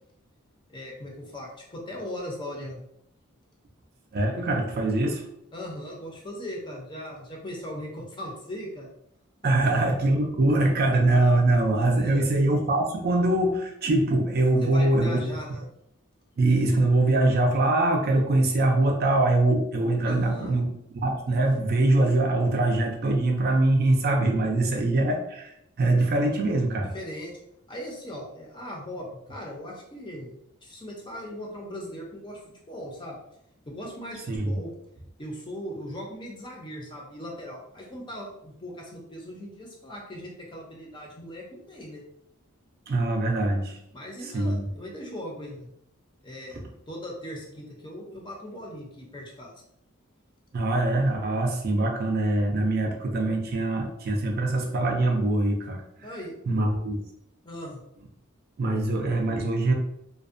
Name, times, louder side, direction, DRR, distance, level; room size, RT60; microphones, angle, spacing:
voice 1, 0.7-2.8 5.5-8.9 9.4-9.5 11.9-12.3 14.6-15.6 20.0-20.6 24.4-24.8 26.9-27.3 27.7-30.3 30.6-32.4 32.7-33.2 33.7-34.7 35.2-42.0 43.9-45.7 46.2-46.6 46.9-49.5 56.0-56.3 57.4-57.8 58.7-58.8, equal, 20° left, -2 dB, 0.5 m, -39 dB
voice 2, 4.1-5.2 9.4-15.2 16.4-20.7 20.9-26.9 34.3-34.6 42.9-43.8 44.2-44.6 50.5-55.8 56.5-57.0 58.6-59.7, right 2 dB, 50° right, 2 dB, 0.4 m, -23 dB
2.4 x 2.1 x 2.5 m, 0.77 s
head